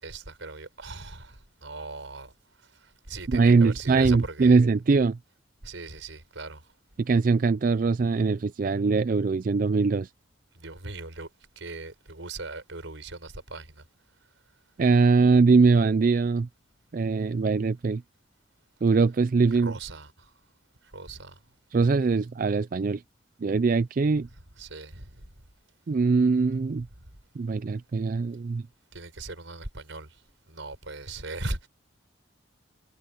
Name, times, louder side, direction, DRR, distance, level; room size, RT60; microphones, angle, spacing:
voice 1, 0.0-2.3 2.8-4.6 5.6-6.6 10.5-11.3 11.6-13.8 19.5-20.3 20.9-21.4 24.6-25.2 28.9-30.1 30.5-31.7, right 2 dB, 85° right, 4.9 m, -38 dB
voice 2, 3.3-5.2 7.0-10.1 14.8-16.5 16.9-18.0 18.8-19.7 21.7-23.0 23.4-24.3 25.9-26.9 27.4-28.6, right 4 dB, 45° right, 0.4 m, -22 dB
head